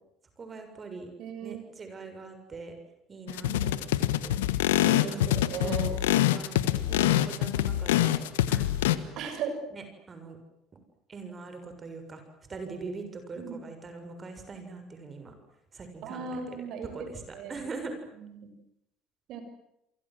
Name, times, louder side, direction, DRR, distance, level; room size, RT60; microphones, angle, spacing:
voice 1, 0.4-1.1 1.4-2.7 3.1-3.9 4.2-4.3 5.1-5.3 5.6-8.1 8.5-9.3 9.7-10.4 11.1-12.2 12.5-15.3 15.7-16.4 16.9-17.2 17.5-17.9, right 4 dB, 35° right, 7 dB, 6.8 m, -42 dB
voice 2, 1.2-1.7 3.4-3.8 4.8-5.9 9.2-9.6 13.4-13.7 16.0-17.1 17.3-17.6 18.1-18.5 19.3-19.4, right 6 dB, 60° right, 8 dB, 6.9 m, -37 dB
sound 1, 3.3-9.0, left 13 dB, 85° left, 1.5 m, -25 dB
30.0 x 24.0 x 7.9 m, 0.81 s
hypercardioid pair, 75°, 0 cm